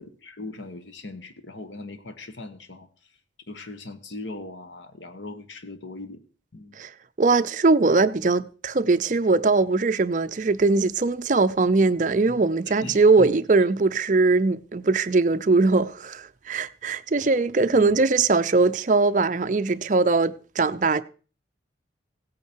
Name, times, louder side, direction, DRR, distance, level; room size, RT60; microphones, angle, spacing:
voice 1, 0.0-2.9 3.5-6.2 6.5-6.8 12.3-12.4 12.8-13.3 17.7-18.0, left 2 dB, 80° left, 1.4 m, -39 dB
voice 2, 7.2-21.0, right 3 dB, 40° right, 0.5 m, -21 dB
16.5 x 8.7 x 4.6 m
head